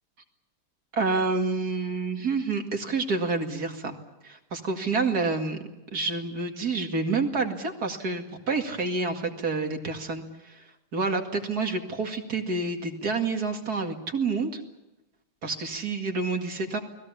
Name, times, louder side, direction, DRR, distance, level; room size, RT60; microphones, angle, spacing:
voice 1, 0.9-4.0 4.2-5.6 5.9-10.2 10.9-14.6 15.4-16.8, right 3 dB, 45° right, 4 dB, 2.6 m, -28 dB
29.5 x 20.5 x 7.1 m, 0.99 s
omnidirectional pair, 2.3 m